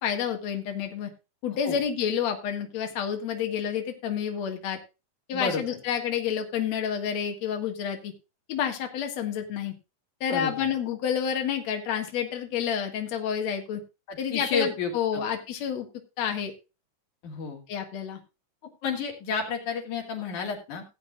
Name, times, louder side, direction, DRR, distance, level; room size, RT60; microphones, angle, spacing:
voice 1, 0.0-1.1 1.4-4.8 5.3-8.1 8.5-9.7 10.2-13.8 14.2-15.9 16.2-16.5 17.7-18.2, left 8 dB, 65° left, 4 dB, 2.9 m, -29 dB
voice 2, 5.3-5.8 10.3-10.7 14.1-15.2 17.2-17.6 18.8-20.8, left 5 dB, 80° left, 2 dB, 4.1 m, -31 dB
17.5 x 8.5 x 2.4 m, 0.28 s
omnidirectional pair, 3.4 m